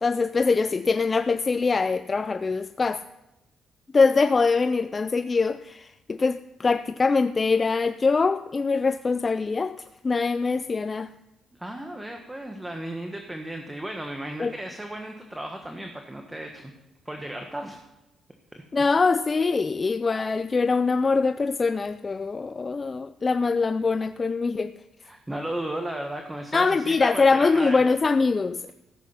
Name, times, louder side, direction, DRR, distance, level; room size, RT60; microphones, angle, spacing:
voice 1, 0.0-3.0 3.9-9.8 10.0-11.1 14.4-14.5 18.7-24.7 26.5-28.7, left 4 dB, 30° left, 12 dB, 0.4 m, -23 dB
voice 2, 11.6-16.7 17.0-17.8 18.5-18.6 25.0-27.8, right 1 dB, 10° right, 3 dB, 1.4 m, -35 dB
15.0 x 8.2 x 5.7 m, 0.97 s
cardioid pair, 90°, 0 cm